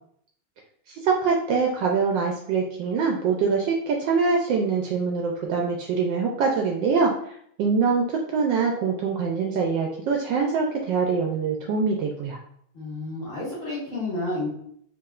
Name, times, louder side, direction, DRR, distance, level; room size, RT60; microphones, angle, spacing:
voice 1, 0.9-7.1 7.6-12.4, right 5 dB, 75° right, 1 dB, 1.1 m, -24 dB
voice 2, 12.7-14.5, left 2 dB, 30° left, -8 dB, 1.5 m, -30 dB
4.7 x 2.9 x 2.4 m, 0.67 s
omnidirectional pair, 2.3 m